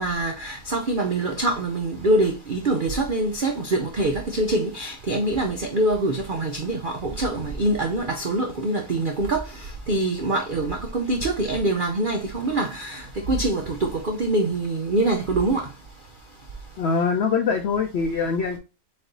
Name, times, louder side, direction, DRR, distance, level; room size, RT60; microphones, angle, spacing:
voice 1, 0.0-15.7, right 2 dB, 70° right, 0.4 m, -24 dB
voice 2, 16.8-18.6, left 5 dB, 75° left, 0.6 m, -23 dB
4.0 x 3.4 x 3.8 m
omnidirectional pair, 1.8 m